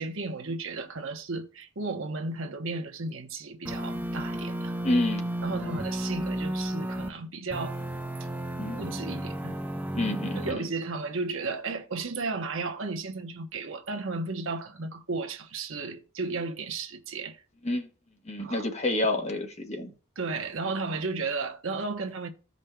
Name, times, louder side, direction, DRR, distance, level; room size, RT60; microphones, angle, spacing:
voice 1, 0.0-4.8 5.4-7.8 8.7-9.6 10.3-17.4 18.4-18.7 20.2-22.3, right 3 dB, 65° right, 0.9 m, -34 dB
sound 1, 3.6-7.1 7.5-10.5, right 1 dB, 10° right, 0.6 m, -33 dB
voice 2, 4.8-5.3 8.6-8.8 9.9-10.7 17.6-17.9 18.2-19.9, left 1 dB, 30° left, 1.1 m, -28 dB
15.5 x 5.2 x 2.2 m
head